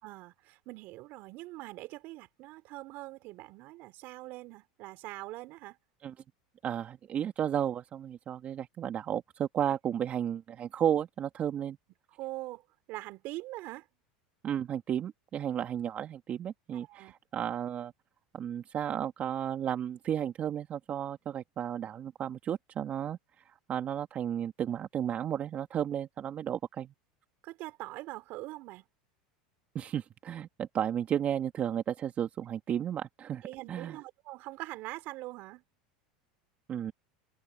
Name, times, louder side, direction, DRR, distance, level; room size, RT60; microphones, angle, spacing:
voice 1, 0.0-5.8 9.7-9.8 12.1-12.6 12.9-13.9 16.9-17.1 27.4-28.9 33.4-35.6, right 19 dB, 55° right, 3.6 m, -43 dB
voice 2, 6.6-11.8 14.4-17.9 18.3-23.2 23.7-26.9 29.7-34.0 36.7-36.9, right 9 dB, 35° right, 1.9 m, -33 dB
hypercardioid pair, 95°, 4 cm